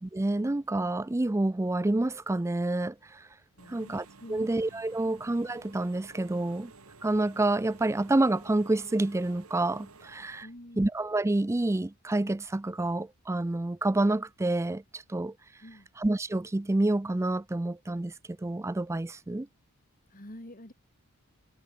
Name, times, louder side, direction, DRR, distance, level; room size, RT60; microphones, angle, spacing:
voice 1, 0.0-3.3 3.7-6.7 7.0-10.5 10.8-15.3 16.0-18.1 18.4-19.5, right 2 dB, 10° right, 0.4 m, -28 dB
voice 2, 3.6-3.9 4.2-4.5 10.4-10.9 15.6-15.9 20.1-20.7, left 1 dB, 40° left, 3.5 m, -47 dB
Engine / Mechanisms, 3.6-10.4, right 3 dB, 70° right, 2.0 m, -53 dB
head